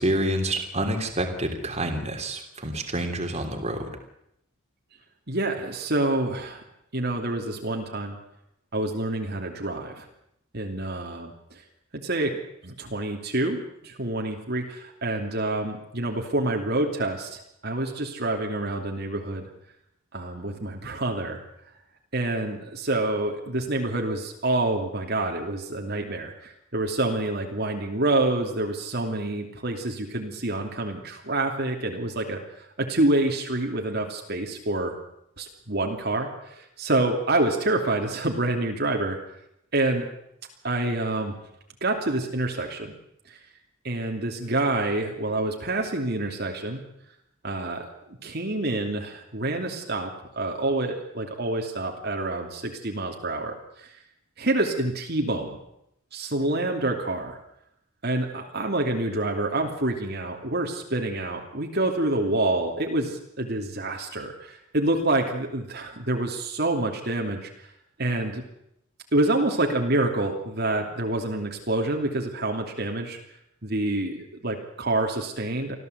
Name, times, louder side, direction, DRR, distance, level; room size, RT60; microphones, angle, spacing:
voice 1, 0.0-4.0, right 1 dB, 35° right, 4 dB, 3.2 m, -28 dB
voice 2, 5.3-6.6 6.9-8.2 8.7-10.1 10.5-11.6 11.9-12.3 12.6-19.5 20.1-21.4 22.1-34.9 35.4-39.2 39.7-40.1 40.6-41.3 41.8-42.9 43.3-43.4 43.8-46.8 47.4-47.9 48.2-53.9 54.4-55.6 56.1-57.4 58.0-67.7 68.0-68.4 69.1-73.2 73.6-75.8, right 2 dB, 55° right, 2 dB, 2.9 m, -27 dB
25.5 x 16.0 x 8.1 m, 0.79 s
head